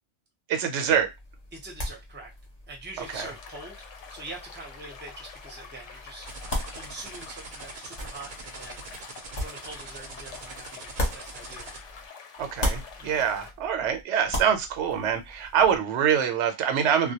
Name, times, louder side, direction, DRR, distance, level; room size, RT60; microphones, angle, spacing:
voice 1, 0.5-1.1 3.1-3.3 12.4-17.1, right 8 dB, 80° right, 7 dB, 0.9 m, -25 dB
sound 1, 0.9-12.1 12.4-15.8, left 1 dB, 40° left, 0.9 m, -37 dB
voice 2, 1.5-2.3 2.7-6.3 6.7-8.8 9.3-11.7 13.0-13.2, right 2 dB, 15° right, -1 dB, 0.5 m, -44 dB
sound 2, 3.0-13.5, left 6 dB, 90° left, 0.9 m, -46 dB
sound 3, 6.3-11.8, right 4 dB, 55° right, 0.6 m, -43 dB
2.2 x 2.1 x 2.7 m, 0.20 s
omnidirectional pair, 1.2 m